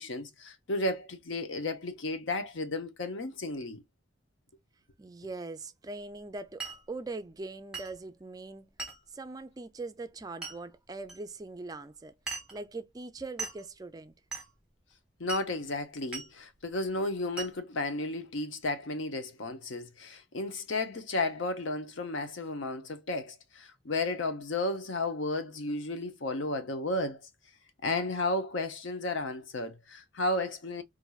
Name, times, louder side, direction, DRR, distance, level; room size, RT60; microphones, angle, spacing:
voice 1, 0.0-3.8 5.2-5.3 15.2-27.2 27.8-30.8, left 2 dB, 75° left, 0.7 m, -33 dB
voice 2, 5.0-8.7 9.1-12.1 12.5-14.1, right 3 dB, 20° right, 0.3 m, -41 dB
Glass, 6.6-6.8 7.7-8.0 8.8-9.0 10.4-10.6 11.1-11.2 12.3-12.6 13.4-13.6 14.3-14.5 15.3-15.5 16.1-16.3 17.4-17.6, right 4 dB, 5° right, 1.0 m, -39 dB
4.3 x 2.5 x 2.3 m
head